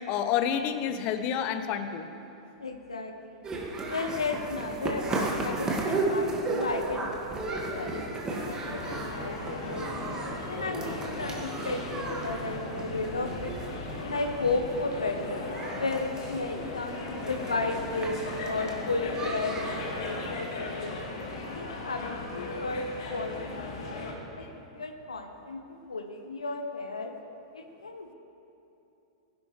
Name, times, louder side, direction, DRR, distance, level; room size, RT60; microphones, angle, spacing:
voice 1, 0.1-2.1 24.4-24.5, left 8 dB, 45° left, 9 dB, 0.8 m, -29 dB
voice 2, 2.6-3.4 3.9-9.9 10.5-13.5 14.0-15.4 15.8-20.9 21.5-22.0 22.3-24.4 24.7-25.6 25.9-27.1 27.5-28.1, left 3 dB, 85° left, 5 dB, 0.8 m, -34 dB
sound 1, 3.4-20.2, right 2 dB, 20° right, 1.8 m, -35 dB
sound 2, 8.3-24.1, left 2 dB, 65° left, 1.9 m, -37 dB
16.5 x 10.5 x 3.2 m, 2.9 s
figure-of-eight pair, 100°, 3 cm